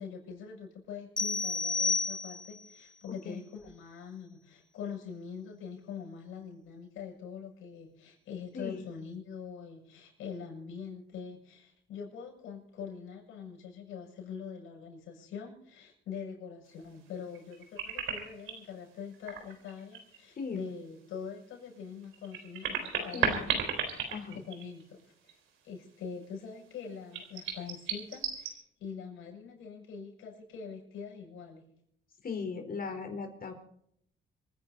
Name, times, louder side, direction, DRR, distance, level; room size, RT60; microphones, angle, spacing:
voice 1, 0.0-23.6 24.3-25.4 25.6-31.6, left 6 dB, 90° left, 0 dB, 7.4 m, -44 dB
sound 1, 1.2-2.7, left 4 dB, 20° left, 1.0 m, -31 dB
voice 2, 8.5-8.9 20.4-20.7 23.1-23.6 24.1-24.4 32.2-33.5, left 5 dB, 45° left, 5 dB, 4.3 m, -38 dB
sound 2, 17.3-18.6 19.1-20.2 20.5-20.6 22.0-25.0 25.3-25.4 27.1-28.5, right 7 dB, 90° right, 3.9 m, -34 dB
27.0 x 10.5 x 4.1 m, 0.70 s
cardioid pair, 90°, 20 cm